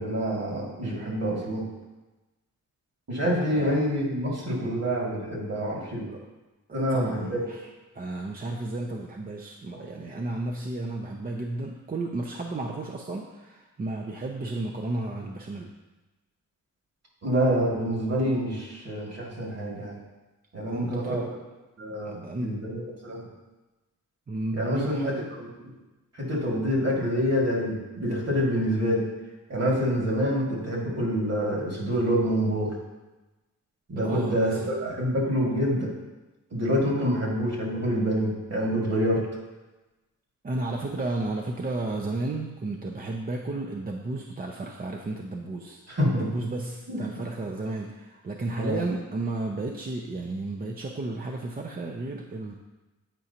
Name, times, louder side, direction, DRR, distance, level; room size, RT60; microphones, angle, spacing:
voice 1, 0.0-1.6 3.1-6.1 6.7-7.4 9.7-9.9 17.2-20.0 20.5-21.2 21.8-23.3 24.5-25.5 26.1-29.0 29.5-32.7 33.9-35.9 36.5-39.2 45.9-46.3 46.9-47.2 48.6-48.9, equal, 50° right, -3 dB, 2.3 m, -27 dB
voice 2, 3.3-3.8 6.1-6.2 6.7-7.7 7.9-15.7 20.6-21.3 22.0-22.6 24.3-25.3 34.0-34.7 40.4-45.8 46.1-52.5, right 2 dB, 30° right, 1 dB, 0.5 m, -33 dB
9.0 x 4.8 x 2.8 m, 1.1 s
wide cardioid pair, 105°, 32 cm